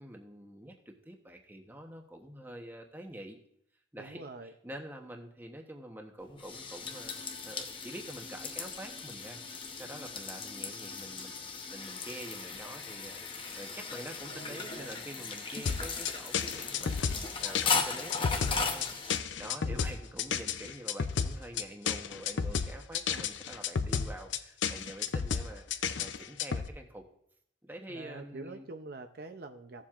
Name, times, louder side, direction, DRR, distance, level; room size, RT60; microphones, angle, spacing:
voice 1, 0.0-3.4 3.9-9.4 9.8-13.2 13.6-18.9 19.4-27.0 27.6-28.7, right 1 dB, 10° right, 3 dB, 0.9 m, -46 dB
voice 2, 4.0-4.5 14.3-15.0 19.7-19.9 27.9-29.9, right 3 dB, 50° right, 6 dB, 0.6 m, -46 dB
sound 1, 6.2-19.2, left 5 dB, 25° left, 0.8 m, -37 dB
sound 2, 15.7-26.7, left 6 dB, 70° left, 0.5 m, -32 dB
16.0 x 7.3 x 2.4 m, 0.72 s
head